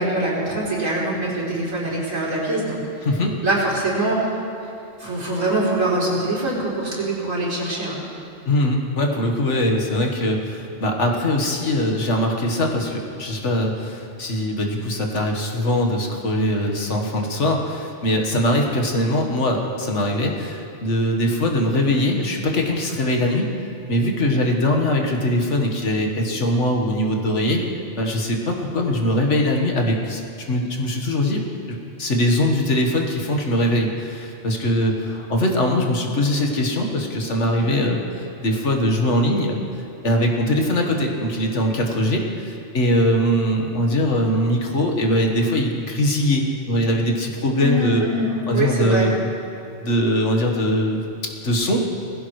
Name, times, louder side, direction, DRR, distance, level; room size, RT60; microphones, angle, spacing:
voice 1, 0.0-2.8 3.4-4.4 5.0-8.0 37.6-37.8 47.6-49.1, right 2 dB, 85° right, -7 dB, 4.0 m, -23 dB
voice 2, 3.0-3.3 8.5-27.6 28.0-30.2 30.5-31.4 31.7-38.0 38.4-39.6 40.0-48.0 48.5-49.1 49.8-51.0 51.4-51.8, left 1 dB, 65° left, 1 dB, 1.8 m, -21 dB
20.5 x 15.5 x 3.2 m, 2.6 s
omnidirectional pair, 1.3 m